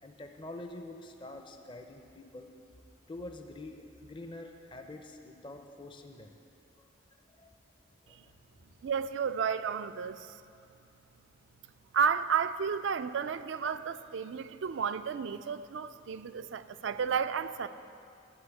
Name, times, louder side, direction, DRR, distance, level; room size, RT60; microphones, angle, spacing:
voice 1, 0.0-2.5 3.1-6.3 7.4-7.5 8.1-8.3 16.9-17.0, left 2 dB, 25° left, 4 dB, 0.5 m, -46 dB
voice 2, 8.8-10.3 11.9-17.7, right 6 dB, 65° right, 12 dB, 0.4 m, -32 dB
12.0 x 5.5 x 8.3 m, 2.5 s
head